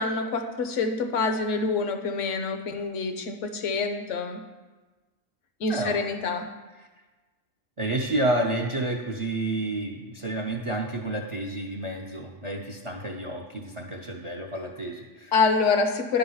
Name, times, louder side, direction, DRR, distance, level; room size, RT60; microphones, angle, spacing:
voice 1, 0.0-4.4 5.6-6.5 15.3-16.2, left 4 dB, 70° left, 6 dB, 1.1 m, -26 dB
voice 2, 5.7-6.0 6.8-6.9 7.8-15.3, right 1 dB, 40° right, 1 dB, 0.5 m, -30 dB
10.5 x 4.0 x 5.5 m, 1.2 s
omnidirectional pair, 1.4 m